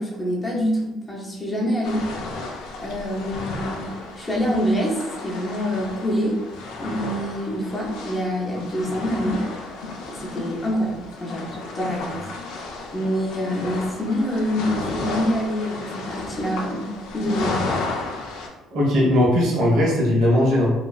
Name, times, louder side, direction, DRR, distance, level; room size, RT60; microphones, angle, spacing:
voice 1, 0.0-2.1 2.8-3.8 4.2-6.4 6.8-9.4 10.1-12.3 12.9-17.6, equal, 15° left, -3 dB, 0.5 m, -26 dB
sound 1, 1.8-18.5, left 3 dB, 80° left, 0.4 m, -33 dB
voice 2, 18.7-20.7, left 1 dB, 70° right, -3 dB, 1.1 m, -18 dB
3.0 x 2.3 x 2.3 m, 1.0 s
cardioid pair, 150°, 0 cm